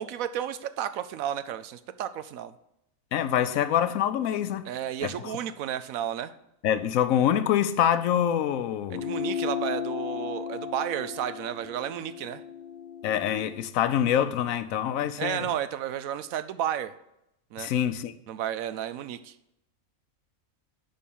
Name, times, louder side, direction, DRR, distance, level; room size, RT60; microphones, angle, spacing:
voice 1, 0.0-2.5 4.7-6.3 8.9-12.4 15.2-16.9 17.5-17.7 18.3-19.3, right 10 dB, 75° right, 1.0 m, -32 dB
voice 2, 3.1-4.7 5.0-5.3 6.6-9.1 13.0-15.5 17.6-18.1, left 10 dB, 75° left, 1.0 m, -25 dB
sound 1, 8.9-13.7, left 7 dB, 45° left, 0.8 m, -35 dB
10.5 x 3.8 x 7.0 m
omnidirectional pair, 1.5 m